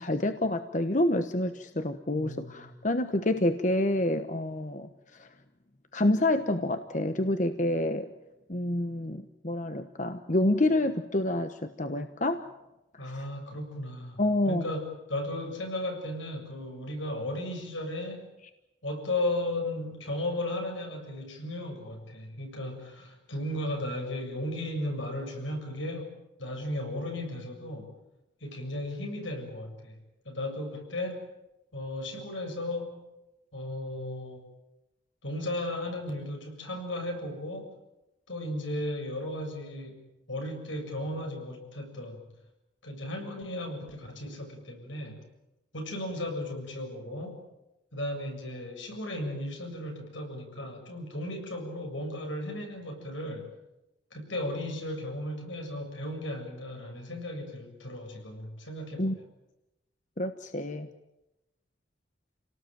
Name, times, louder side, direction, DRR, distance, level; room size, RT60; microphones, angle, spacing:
voice 1, 0.0-5.3 5.9-8.1 8.5-12.4 12.9-13.2 14.2-14.6 59.0-59.2 60.2-60.9, left 1 dB, 40° left, 8 dB, 1.1 m, -28 dB
voice 2, 2.1-2.7 13.0-18.3 18.8-27.9 28.4-30.0 30.3-31.3 31.7-33.0 33.5-34.5 35.2-37.7 38.3-40.0 40.3-42.2 42.8-45.2 45.7-47.4 47.9-53.5 54.1-59.1, left 1 dB, 85° left, 3 dB, 7.2 m, -35 dB
29.0 x 18.5 x 9.1 m, 0.95 s
head